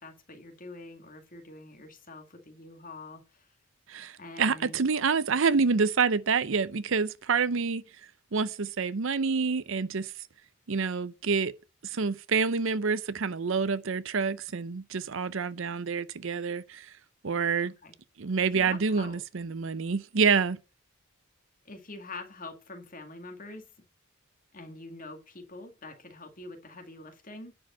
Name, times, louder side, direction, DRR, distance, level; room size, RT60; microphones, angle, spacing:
voice 1, 0.0-3.5 4.2-4.8 17.8-17.9 18.5-19.2 21.7-23.7 24.5-27.5, left 2 dB, 35° left, 2.1 m, -45 dB
voice 2, 3.9-7.8 8.3-10.1 10.7-11.5 11.8-16.9 17.2-17.7 18.2-20.6, right 5 dB, 60° right, 0.6 m, -27 dB
10.5 x 4.8 x 7.2 m
head